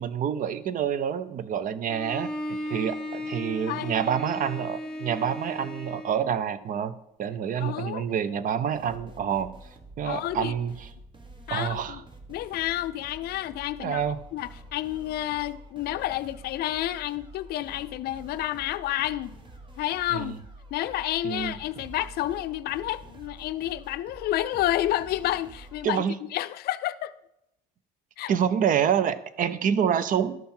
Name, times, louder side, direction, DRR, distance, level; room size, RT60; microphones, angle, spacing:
voice 1, 0.0-9.6 10.0-10.9 11.5-12.0 13.8-14.2 20.1-20.4 21.2-21.6 25.8-26.1 28.3-30.4, right 8 dB, 55° right, 0.6 m, -27 dB
Bowed string instrument, 1.8-6.3, equal, 5° left, 1.2 m, -36 dB
voice 2, 7.6-8.1 10.0-10.5 11.5-12.0 12.3-14.0 14.3-19.3 19.8-20.4 20.7-26.0 26.3-27.1 28.2-28.3, left 14 dB, 70° left, 0.4 m, -30 dB
sound 1, 8.7-25.9, right 1 dB, 30° right, 1.3 m, -48 dB
12.0 x 5.7 x 4.4 m
cardioid pair, 110°, 17 cm